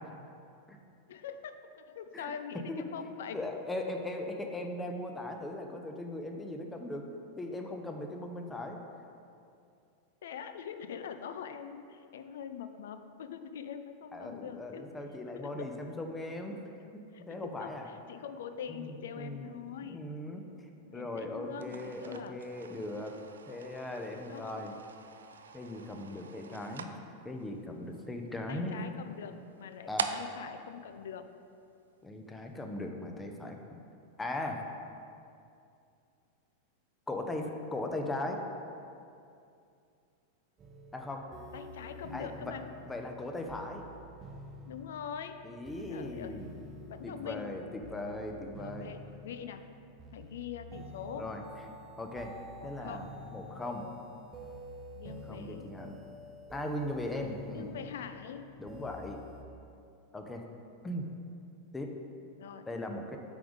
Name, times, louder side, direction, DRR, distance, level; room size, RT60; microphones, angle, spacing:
voice 1, 1.1-3.4 10.2-14.9 15.3-15.7 17.1-20.1 20.8-22.4 24.2-24.6 28.5-31.3 41.5-42.7 44.7-45.4 45.9-46.4 46.9-47.5 48.6-49.6 50.1-51.3 52.6-53.1 54.9-55.7 57.5-58.5 62.4-62.7, left 7 dB, 60° left, 9 dB, 0.4 m, -43 dB
voice 2, 2.7-7.0 7.4-8.8 14.1-16.6 17.2-17.9 18.7-18.9 19.2-19.5 19.8-20.4 20.9-23.2 23.5-24.7 25.5-26.9 27.2-28.9 29.9-30.1 32.0-33.8 34.2-34.6 37.1-38.4 40.9-41.2 42.1-42.5 42.9-43.8 45.4-46.5 47.0-48.9 51.1-51.4 52.0-52.3 52.6-53.1 53.3-53.9 55.0-56.0 56.5-57.7 58.6-59.2 60.1-60.4 60.8-61.1 61.7-61.9 62.7-63.2, left 1 dB, 10° left, 3 dB, 0.7 m, -38 dB
sound 1, 21.5-31.9, right 5 dB, 65° right, 0.3 m, -44 dB
sound 2, 40.6-59.4, equal, 25° right, 0.7 m, -49 dB
8.5 x 3.6 x 5.0 m, 2.5 s
figure-of-eight pair, 90°, 0 cm